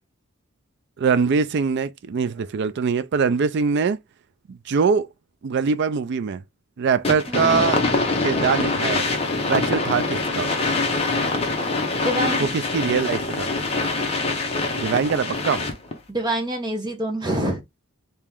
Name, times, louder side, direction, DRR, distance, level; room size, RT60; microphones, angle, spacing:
voice 1, 1.0-4.0 4.5-5.1 5.4-6.4 6.8-7.8 8.2-9.1 9.5-10.5 12.4-13.5 14.8-15.6, right 5 dB, 50° right, 0.3 m, -22 dB
sound 1, 7.0-15.9, left 3 dB, 25° left, 0.8 m, -24 dB
voice 2, 7.3-7.6 12.0-12.5 16.1-17.6, right 1 dB, 20° right, 1.0 m, -26 dB
3.0 x 2.8 x 3.5 m
head